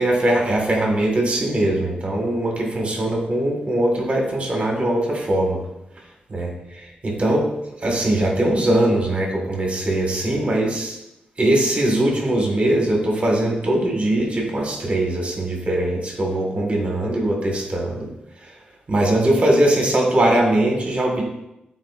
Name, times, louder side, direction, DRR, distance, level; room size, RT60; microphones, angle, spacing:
voice 1, 0.0-5.6 6.3-6.5 7.0-7.5 7.8-11.0 11.4-18.1 18.9-21.2, right 1 dB, 40° right, -1 dB, 1.8 m, -21 dB
12.0 x 4.7 x 2.5 m, 0.88 s
wide cardioid pair, 110°, 3 cm